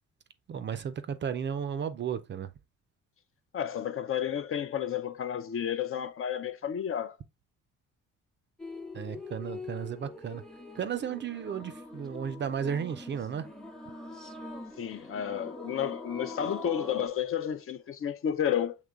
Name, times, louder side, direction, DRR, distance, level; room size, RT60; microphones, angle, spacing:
voice 1, 0.5-2.5 8.9-10.4 10.7-13.5, right 8 dB, 40° right, 0.4 m, -34 dB
voice 2, 3.5-7.1 14.8-18.7, left 9 dB, 45° left, 0.5 m, -31 dB
sound 1, 8.6-17.1, left 2 dB, ahead, 0.6 m, -43 dB
6.5 x 2.9 x 2.3 m
cardioid pair, 90°, 30 cm